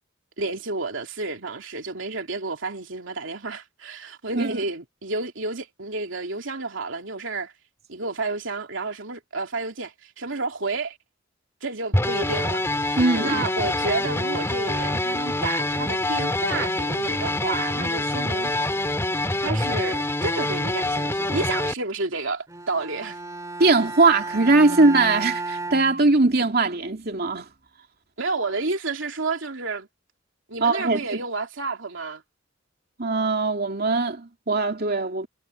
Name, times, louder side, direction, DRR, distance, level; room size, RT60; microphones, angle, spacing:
voice 1, 0.4-7.5 7.9-11.0 11.6-18.5 19.4-23.2 28.2-29.9 30.5-32.2, right 3 dB, 80° right, 2.9 m, -30 dB
sound 1, 11.9-21.7, left 1 dB, 15° left, 2.9 m, -25 dB
voice 2, 13.0-13.5 23.6-27.5 30.6-31.2 33.0-35.3, right 3 dB, 55° right, 2.7 m, -20 dB
Bowed string instrument, 22.5-26.6, right 3 dB, 15° right, 2.8 m, -34 dB
head